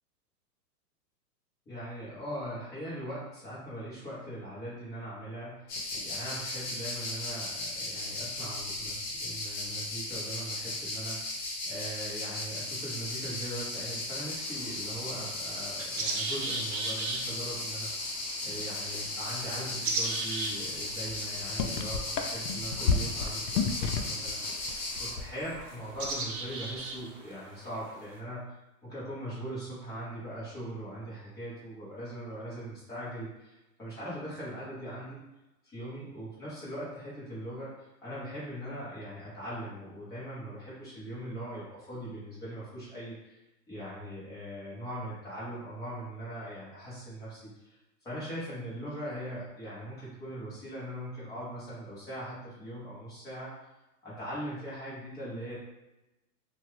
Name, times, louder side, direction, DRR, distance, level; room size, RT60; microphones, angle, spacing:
voice 1, 1.7-18.1 18.4-24.7 25.0-28.6 28.8-35.2 35.6-43.4 43.7-47.8 48.0-53.5 54.0-55.6, right 1 dB, 10° left, -10 dB, 0.6 m, -40 dB
sound 1, 5.7-25.1, left 2 dB, 45° left, 0.8 m, -36 dB
sound 2, 14.3-28.2, right 3 dB, 55° right, 0.6 m, -39 dB
sound 3, 21.1-21.2 21.4-24.3 24.6-25.7 25.9-26.2, left 6 dB, 85° left, 0.6 m, -30 dB
2.8 x 2.2 x 3.0 m, 0.99 s
hypercardioid pair, 155°, 47 cm